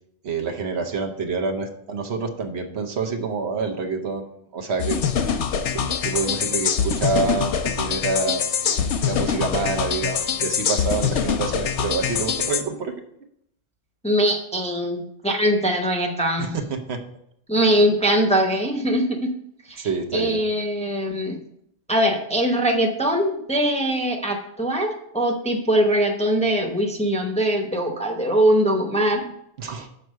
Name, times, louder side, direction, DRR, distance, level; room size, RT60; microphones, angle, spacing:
voice 1, 0.2-5.0 5.7-8.5 9.0-12.9 16.4-17.0 17.7-17.8 19.8-20.4 29.6-29.9, right 4 dB, 70° right, 4 dB, 1.1 m, -27 dB
sound 1, 4.8-12.6, left 7 dB, 85° left, 1.0 m, -24 dB
voice 2, 14.0-16.6 17.5-19.3 19.7-19.8 20.1-21.4 21.9-29.3, right 1 dB, 5° left, 2 dB, 0.8 m, -22 dB
6.5 x 4.6 x 6.3 m, 0.71 s
omnidirectional pair, 1.2 m